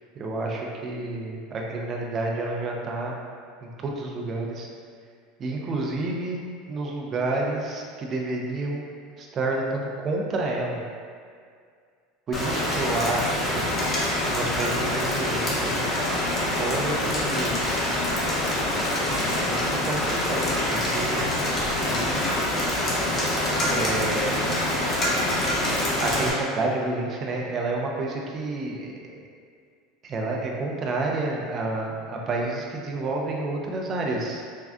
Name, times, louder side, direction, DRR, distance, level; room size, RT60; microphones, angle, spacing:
voice 1, 0.1-3.1 3.6-4.7 5.4-6.4 6.7-8.9 9.2-10.8 12.3-13.6 14.2-15.8 16.6-17.6 19.5-21.2 21.8-22.3 23.6-24.5 26.0-29.2 30.0-34.5, right 2 dB, 35° right, -1 dB, 0.5 m, -29 dB
Rain, 12.3-26.3, left 1 dB, 30° left, 0.7 m, -25 dB
3.6 x 2.3 x 2.2 m, 2.1 s
supercardioid pair, 105°, 0 cm